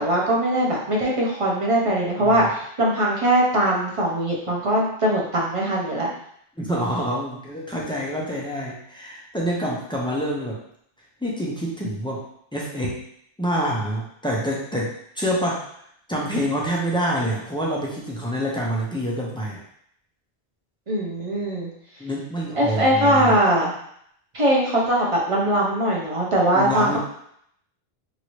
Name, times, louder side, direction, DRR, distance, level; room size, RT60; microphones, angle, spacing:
voice 1, 0.0-6.1 20.9-21.7 22.5-23.7 24.3-27.0, right 1 dB, 40° right, -3 dB, 0.6 m, -21 dB
voice 2, 6.6-10.6 11.2-12.2 12.5-13.0 13.4-15.6 16.1-19.6 22.0-23.3 26.5-27.0, equal, 5° left, -5 dB, 0.4 m, -26 dB
3.0 x 2.6 x 3.0 m, 0.70 s
omnidirectional pair, 1.0 m